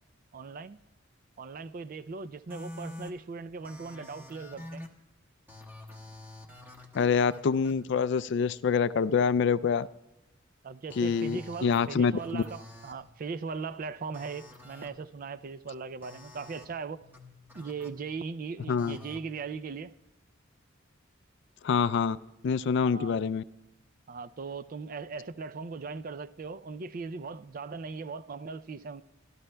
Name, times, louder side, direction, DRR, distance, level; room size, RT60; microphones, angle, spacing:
voice 1, 0.3-0.8 1.4-4.9 10.6-17.0 17.5-19.9 22.9-23.1 24.1-29.0, right 4 dB, 45° right, 0.4 m, -39 dB
sound 1, 2.5-3.1 3.6-4.9 5.5-7.7 10.9-11.9 12.2-12.9 14.1-14.9 16.0-16.7 17.0-17.9 18.8-19.2, left 1 dB, 10° right, 1.2 m, -47 dB
voice 2, 6.9-9.9 11.0-12.4 18.7-19.0 21.6-22.2 22.4-23.4, left 6 dB, 60° left, 0.3 m, -26 dB
25.5 x 12.5 x 2.2 m
head